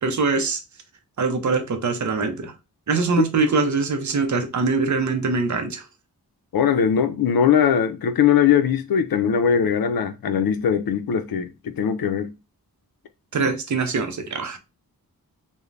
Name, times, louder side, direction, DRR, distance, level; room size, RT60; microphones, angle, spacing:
voice 1, 0.0-0.6 1.2-2.5 2.9-5.8 13.3-14.6, right 4 dB, 55° right, 0.6 m, -23 dB
voice 2, 6.5-12.3 13.4-13.5, left 8 dB, 80° left, 0.5 m, -20 dB
2.5 x 2.1 x 3.1 m
wide cardioid pair, 95°, 35 cm